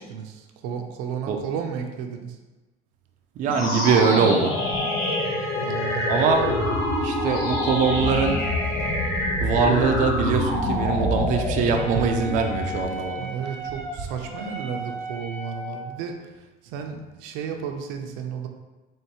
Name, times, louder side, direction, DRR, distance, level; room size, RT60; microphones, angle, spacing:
voice 1, 0.0-2.4 5.6-6.8 10.3-10.5 13.2-18.5, right 7 dB, 85° right, 3 dB, 0.6 m, -33 dB
voice 2, 3.4-4.6 6.1-6.5 7.0-8.5 9.4-13.3, right 5 dB, 40° right, 3 dB, 0.4 m, -22 dB
sound 1, 3.5-12.9, left 1 dB, 75° left, 1.1 m, -26 dB
sound 2, 4.4-9.4, left 4 dB, 30° left, 1.5 m, -33 dB
Wind instrument woodwind instrument, 11.7-15.9, equal, ahead, 0.6 m, -36 dB
4.5 x 3.0 x 2.9 m, 1.1 s
cardioid pair, 170°, 20 cm